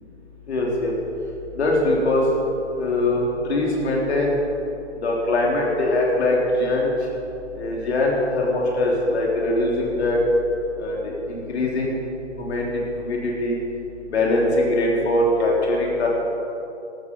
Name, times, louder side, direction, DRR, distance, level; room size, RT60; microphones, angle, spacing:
voice 1, 0.5-0.9 1.6-2.2 2.8-4.4 5.0-6.9 7.6-10.2 10.8-12.0 12.4-12.7 13.0-13.6 14.1-16.1, left 2 dB, 65° left, -2 dB, 3.7 m, -22 dB
13.5 x 13.0 x 5.4 m, 2.8 s
hypercardioid pair, 145°, 35 cm